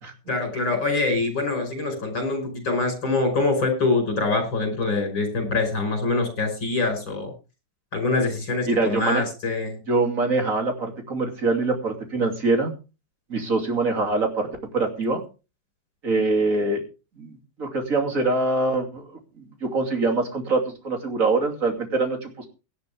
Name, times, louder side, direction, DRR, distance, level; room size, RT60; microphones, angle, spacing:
voice 1, 0.3-7.3 7.9-9.8, left 3 dB, 75° left, 5 dB, 6.1 m, -24 dB
voice 2, 8.7-9.2 9.9-12.7 13.3-14.5 14.7-15.2 16.0-16.8 17.2-19.1 19.4-22.5, right 3 dB, 45° right, 3 dB, 3.2 m, -24 dB
17.5 x 11.0 x 3.5 m, 0.32 s
omnidirectional pair, 2.1 m